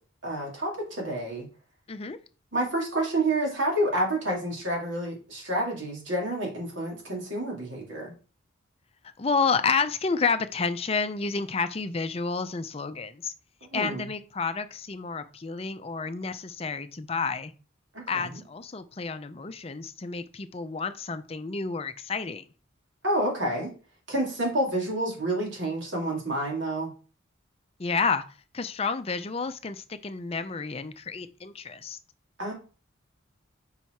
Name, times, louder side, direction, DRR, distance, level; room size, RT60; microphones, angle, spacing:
voice 1, 0.2-1.5 2.5-8.1 13.6-14.1 17.9-18.4 23.0-23.7 24.1-26.9 32.4-32.5, right 1 dB, 65° right, -1 dB, 2.7 m, -29 dB
voice 2, 9.2-13.3 13.7-17.5 18.1-22.4 27.8-28.2 28.5-32.0, left 5 dB, 30° left, 10 dB, 0.5 m, -30 dB
5.6 x 4.4 x 4.6 m, 0.36 s
head